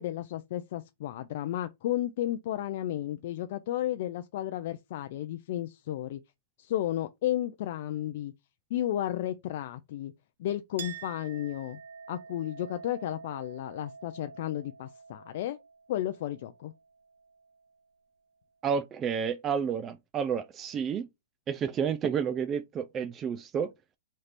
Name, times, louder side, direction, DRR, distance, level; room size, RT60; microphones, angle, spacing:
voice 1, 0.0-6.2 6.6-8.3 8.7-10.1 10.4-11.8 12.1-15.6 15.9-16.7, left 12 dB, 55° left, 0.4 m, -33 dB
Chink clink, 10.8-17.8, right 6 dB, 85° right, 0.6 m, -48 dB
voice 2, 18.6-21.1 21.5-23.7, right 7 dB, 20° right, 0.3 m, -30 dB
4.2 x 2.5 x 3.3 m
hypercardioid pair, 140°, 0 cm